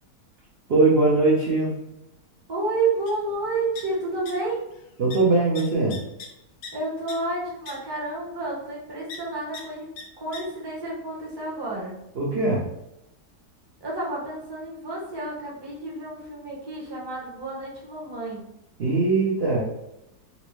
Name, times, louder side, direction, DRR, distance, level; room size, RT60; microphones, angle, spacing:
voice 1, 0.7-1.7 5.0-6.0 12.2-12.7 18.8-19.6, right 3 dB, 55° right, -5 dB, 0.7 m, -21 dB
voice 2, 2.5-4.6 6.7-9.9 10.1-12.0 13.8-18.4, right 3 dB, 20° right, -5 dB, 0.7 m, -30 dB
sound 1, 3.1-3.2 3.4-4.3 4.6-4.8 5.1-5.2 5.6-6.7 7.1-7.2 7.7-7.8 9.1-9.2 9.5-9.6 10.0-10.1 10.3-10.4, left 5 dB, 75° left, 1.2 m, -39 dB
4.0 x 2.2 x 3.0 m, 0.84 s
omnidirectional pair, 1.7 m